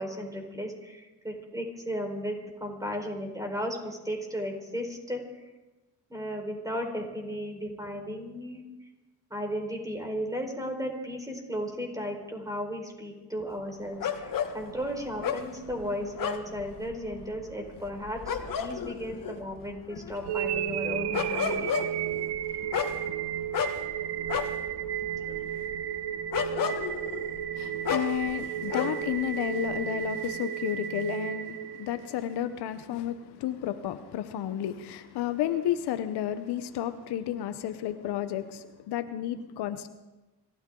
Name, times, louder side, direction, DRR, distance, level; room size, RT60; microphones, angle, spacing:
voice 1, 0.0-2.3 2.6-5.2 6.1-8.6 9.3-21.7, equal, 10° right, 2 dB, 4.5 m, -35 dB
sound 1, 14.0-29.2 29.5-30.3, left 7 dB, 55° left, 1.6 m, -34 dB
sound 2, 20.2-32.3, right 10 dB, 80° right, 0.9 m, -33 dB
voice 2, 27.6-39.9, left 11 dB, 80° left, 11 dB, 0.9 m, -32 dB
26.5 x 13.5 x 3.9 m, 1.1 s
cardioid pair, 80°, 39 cm